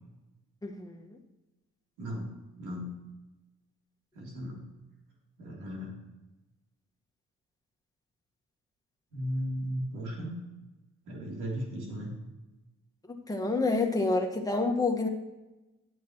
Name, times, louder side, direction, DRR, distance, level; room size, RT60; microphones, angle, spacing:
voice 1, 0.6-1.1 13.3-15.1, left 3 dB, 10° left, 2 dB, 1.4 m, -28 dB
voice 2, 2.0-2.3 2.6-3.0 4.1-4.7 5.4-6.0 9.1-10.4 11.0-12.1, equal, 85° right, -2 dB, 3.1 m, -36 dB
10.5 x 8.5 x 3.0 m, 1.1 s
cardioid pair, 90°, 30 cm